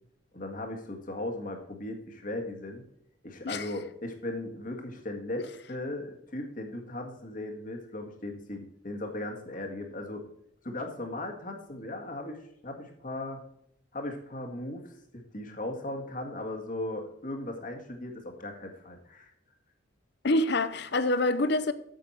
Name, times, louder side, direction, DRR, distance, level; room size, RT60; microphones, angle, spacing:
voice 1, 0.3-2.8 3.2-10.2 10.6-13.4 13.9-14.9 15.3-19.3, left 1 dB, 45° left, 1.9 m, -37 dB
voice 2, 20.2-21.7, left 2 dB, 60° left, 0.8 m, -26 dB
9.2 x 7.5 x 4.3 m
head